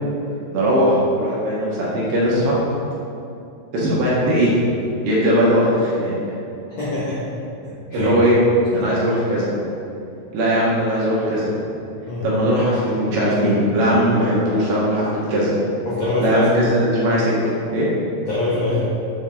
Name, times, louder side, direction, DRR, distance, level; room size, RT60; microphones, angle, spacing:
voice 1, 0.5-2.6 3.7-4.5 5.0-6.1 7.9-8.4 8.7-9.5 10.3-11.5 12.2-15.5 16.2-17.3 17.7-17.9, equal, 65° right, -6 dB, 2.4 m, -19 dB
voice 2, 6.8-7.2 7.9-8.1 8.7-8.8 12.1-12.3 15.9-16.5 18.3-18.8, left 2 dB, 80° left, -8 dB, 1.5 m, -23 dB
7.5 x 4.5 x 3.6 m, 2.6 s
omnidirectional pair, 4.6 m